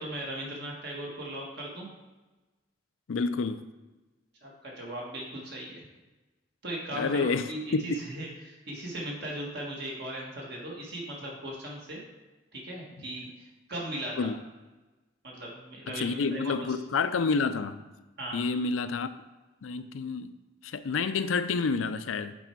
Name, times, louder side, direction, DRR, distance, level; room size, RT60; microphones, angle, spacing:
voice 1, 0.0-1.9 4.4-5.8 6.6-12.0 12.5-14.3 15.2-16.5 18.2-18.4, right 1 dB, 55° right, 1.6 m, -38 dB
voice 2, 3.1-3.6 6.9-8.0 14.2-14.4 15.9-17.8 18.3-19.1 19.6-20.3 20.6-22.3, left 4 dB, 90° left, 0.4 m, -29 dB
8.2 x 4.4 x 4.5 m
head